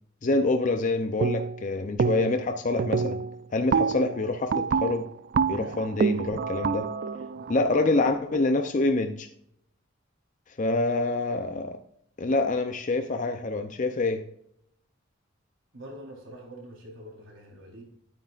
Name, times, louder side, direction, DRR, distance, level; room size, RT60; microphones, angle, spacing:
voice 1, 0.2-3.2 3.5-5.1 5.5-6.9 7.5-9.3 10.6-11.8 12.2-14.2, left 2 dB, 40° left, 6 dB, 0.6 m, -26 dB
sound 1, 1.2-1.7 2.0-2.5 2.8-8.6, right 5 dB, 50° right, 0.3 m, -28 dB
voice 2, 5.5-6.0 7.3-7.6 15.7-17.8, right 1 dB, 85° right, -2 dB, 3.9 m, -45 dB
9.7 x 9.1 x 2.5 m, 0.72 s
head